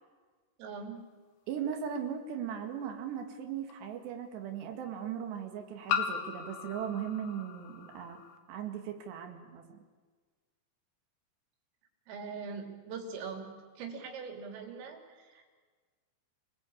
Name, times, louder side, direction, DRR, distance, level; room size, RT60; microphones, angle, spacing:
voice 1, 0.6-1.1 12.1-13.5 13.8-15.5, right 5 dB, 85° right, 3 dB, 5.8 m, -42 dB
voice 2, 1.5-8.2 8.5-9.8, right 8 dB, 65° right, 4 dB, 4.1 m, -38 dB
sound 1, 1.9-2.0 3.7-3.8 5.9-8.4, left 8 dB, 65° left, 3.3 m, -36 dB
28.0 x 20.0 x 8.8 m, 1.4 s
omnidirectional pair, 5.8 m